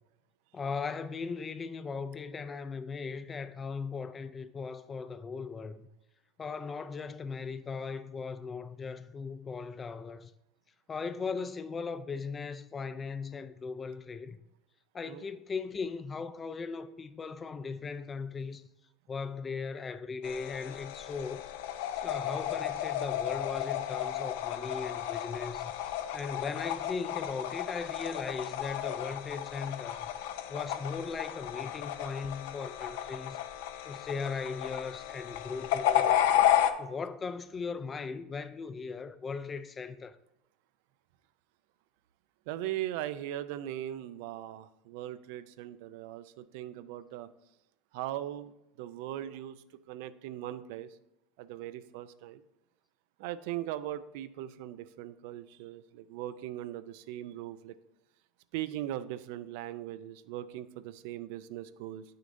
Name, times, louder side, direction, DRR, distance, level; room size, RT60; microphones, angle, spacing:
voice 1, 0.5-5.9 6.4-10.3 10.9-14.4 14.9-18.6 19.1-21.5 22.0-25.7 26.1-30.1 30.5-33.4 33.8-36.3 36.8-40.1 49.2-49.4, left 5 dB, 20° left, 0.4 m, -38 dB
sound 1, 20.2-36.7, left 11 dB, 75° left, 0.5 m, -32 dB
voice 2, 42.5-47.3 47.9-48.5 48.8-50.9 51.4-52.4 53.2-57.7 58.5-62.0, right 13 dB, 70° right, 0.4 m, -39 dB
8.5 x 6.4 x 2.6 m
supercardioid pair, 140°, 0 cm